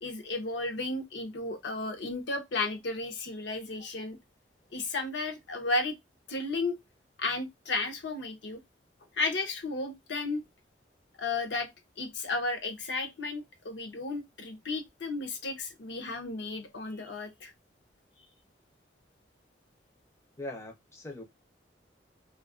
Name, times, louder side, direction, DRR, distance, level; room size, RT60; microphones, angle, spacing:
voice 1, 0.0-4.2 4.7-6.0 6.3-6.7 7.2-8.6 9.1-10.4 11.2-11.7 12.0-17.5, left 3 dB, 75° left, 0.6 m, -33 dB
voice 2, 20.4-21.2, left 1 dB, 15° left, 0.4 m, -41 dB
2.6 x 2.3 x 2.3 m
head